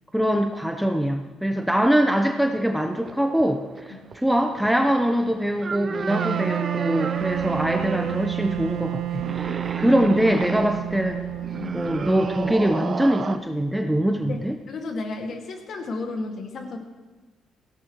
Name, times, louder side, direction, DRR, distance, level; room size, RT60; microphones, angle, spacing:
voice 1, 0.1-11.2 11.7-14.6, equal, 5° right, 4 dB, 0.9 m, -23 dB
sound 1, 2.9-13.4, right 5 dB, 40° right, 0.6 m, -34 dB
Wind instrument woodwind instrument, 6.1-13.0, right 13 dB, 85° right, 0.4 m, -30 dB
sound 2, 7.1-12.7, left 1 dB, 30° left, 3.4 m, -46 dB
voice 2, 9.2-9.8 11.5-11.8 14.3-16.8, left 3 dB, 60° left, 3 dB, 2.2 m, -33 dB
16.5 x 16.5 x 3.2 m, 1.3 s
cardioid pair, 90°, 0 cm